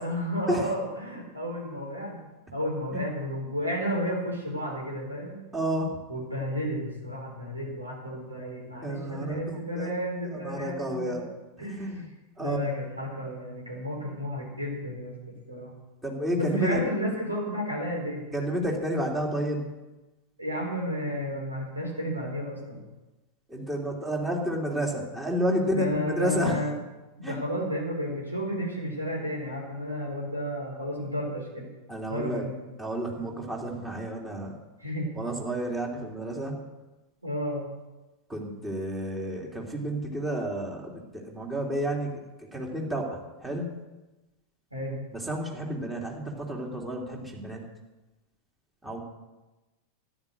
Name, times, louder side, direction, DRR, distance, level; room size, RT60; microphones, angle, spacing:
voice 1, 0.0-2.2 2.5-5.4 6.1-11.3 11.6-11.9 12.4-15.7 16.3-18.3 20.4-22.8 25.6-26.8 27.2-31.7 32.1-32.6 34.8-35.1 37.2-37.7 44.7-45.0, equal, 85° right, -1 dB, 4.4 m, -32 dB
voice 2, 5.5-6.0 8.8-9.4 9.7-9.9 10.4-11.2 11.6-12.1 12.4-12.6 16.0-16.8 18.3-19.7 23.5-26.6 27.2-27.4 31.9-32.4 32.8-34.5 35.2-36.5 38.3-42.1 42.4-43.8 45.1-47.6 48.8-49.0, equal, 10° right, -1 dB, 2.9 m, -30 dB
13.0 x 10.5 x 6.7 m, 1.1 s
figure-of-eight pair, 90°, 0 cm